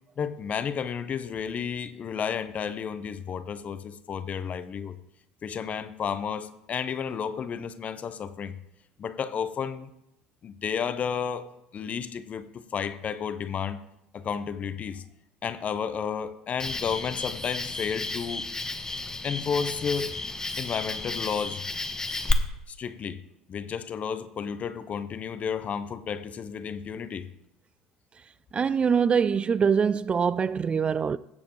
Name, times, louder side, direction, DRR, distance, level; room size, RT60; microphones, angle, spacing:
voice 1, 0.2-5.0 5.4-8.6 9.0-9.9 10.4-11.5 11.7-13.8 14.1-15.0 15.4-18.5 18.9-20.1 20.6-21.6 22.7-23.2 23.5-27.3, left 7 dB, 40° left, 0.8 m, -32 dB
Cricket, 16.6-22.3, left 3 dB, 15° left, 1.1 m, -32 dB
voice 2, 28.5-31.2, right 6 dB, 30° right, 0.3 m, -24 dB
15.5 x 7.2 x 3.1 m
hypercardioid pair, 70°, 4 cm